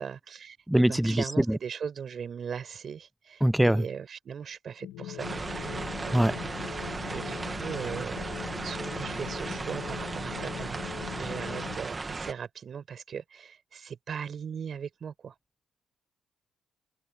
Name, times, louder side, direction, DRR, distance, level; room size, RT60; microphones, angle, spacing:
voice 1, 0.0-8.2 8.6-15.4, right 7 dB, 50° right, 5.6 m, -39 dB
voice 2, 0.7-1.6 3.4-3.8 6.1-6.3, right 1 dB, 5° right, 0.4 m, -23 dB
sound 1, 4.8-11.8, left 13 dB, 90° left, 1.5 m, -41 dB
sound 2, 5.2-12.3, right 3 dB, 25° right, 1.3 m, -36 dB
cardioid pair, 90°, 0 cm